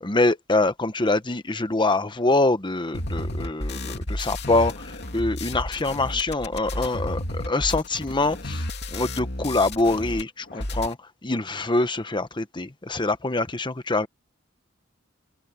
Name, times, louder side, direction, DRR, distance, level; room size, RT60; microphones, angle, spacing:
voice 1, 0.0-8.6 8.9-11.0 11.2-14.1, left 2 dB, 20° left, 1.0 m, -24 dB
sound 1, 2.9-10.2 10.5-10.9, left 1 dB, 55° left, 2.8 m, -32 dB
open air
head